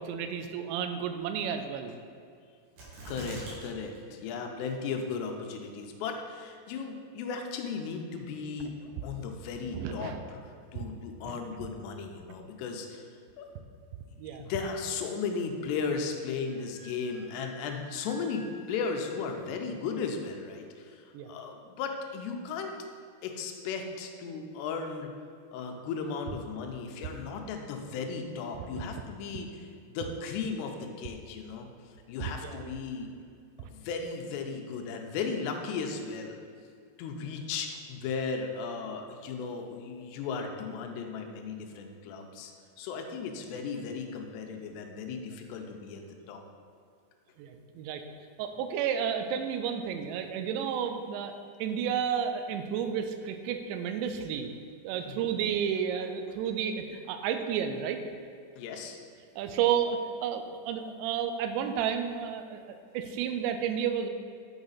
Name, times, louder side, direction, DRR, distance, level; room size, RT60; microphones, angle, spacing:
voice 1, 0.0-1.9 9.7-10.2 11.2-11.4 14.2-14.5 21.1-21.3 32.4-32.8 47.4-48.0 48.4-51.3 51.6-54.5 54.8-58.0 59.4-62.6 62.9-64.1, right 8 dB, 85° right, 7 dB, 2.8 m, -31 dB
sound 1, 2.8-3.6 3.9-4.0 4.6-5.1 5.6-5.7, right 2 dB, 65° right, 3.5 m, -42 dB
voice 2, 3.1-13.1 13.4-13.5 14.3-22.7 23.2-25.1 25.5-31.7 32.1-33.1 33.6-36.4 37.0-42.5 42.8-46.4 55.0-55.3 58.6-59.0, left 5 dB, 80° left, 3 dB, 2.7 m, -36 dB
Wind instrument woodwind instrument, 16.5-19.0, equal, 50° left, 1.7 m, -52 dB
8.8 x 5.1 x 4.0 m, 2.2 s
omnidirectional pair, 5.2 m